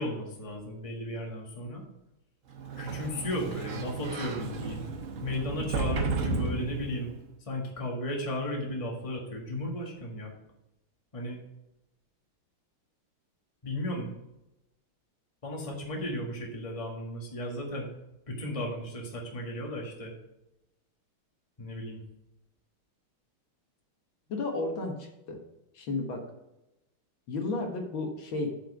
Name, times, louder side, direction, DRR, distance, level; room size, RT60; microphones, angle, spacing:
voice 1, 0.0-1.8 2.8-4.9 5.2-7.1 7.5-10.3 11.1-11.4 13.6-14.1 15.4-17.9 18.3-20.1 21.6-22.0, left 1 dB, 20° left, -1 dB, 1.4 m, -35 dB
Sliding door, 2.6-7.3, right 4 dB, 55° right, 0.9 m, -33 dB
voice 2, 24.3-25.4 25.8-26.2 27.3-28.5, left 2 dB, 70° left, 2 dB, 2.0 m, -33 dB
7.9 x 5.3 x 4.8 m, 0.91 s
omnidirectional pair, 2.3 m